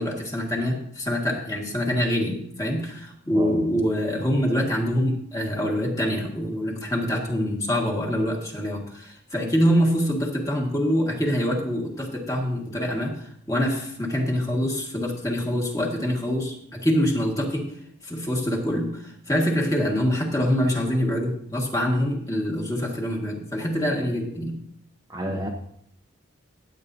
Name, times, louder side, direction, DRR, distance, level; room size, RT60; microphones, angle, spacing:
voice 1, 0.0-24.6, equal, 15° left, 0 dB, 1.8 m, -25 dB
voice 2, 25.1-25.5, right 1 dB, 15° right, 0 dB, 0.8 m, -29 dB
15.5 x 9.0 x 2.7 m, 0.68 s
head